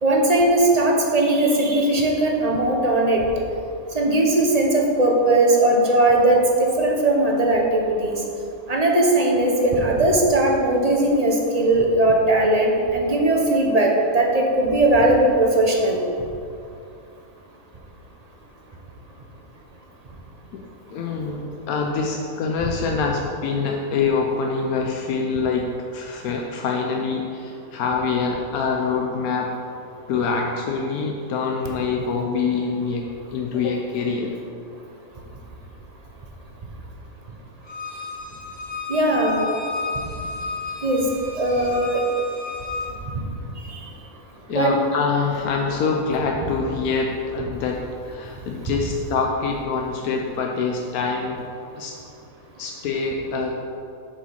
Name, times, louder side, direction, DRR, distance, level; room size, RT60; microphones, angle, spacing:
voice 1, 0.0-3.2 3.9-8.2 8.7-16.0 38.9-39.4 40.8-41.0 41.3-42.0 43.7-43.8 44.5-44.7, right 1 dB, 35° right, 0 dB, 0.8 m, -19 dB
voice 2, 20.9-29.5 30.1-34.3 39.5-39.6 44.5-51.5 51.8-51.9 52.6-53.5, left 4 dB, 85° left, 1 dB, 1.1 m, -25 dB
Bowed string instrument, 37.6-42.9, left 4 dB, 20° left, 1.2 m, -32 dB
7.1 x 4.9 x 5.7 m, 2.5 s
omnidirectional pair, 1.5 m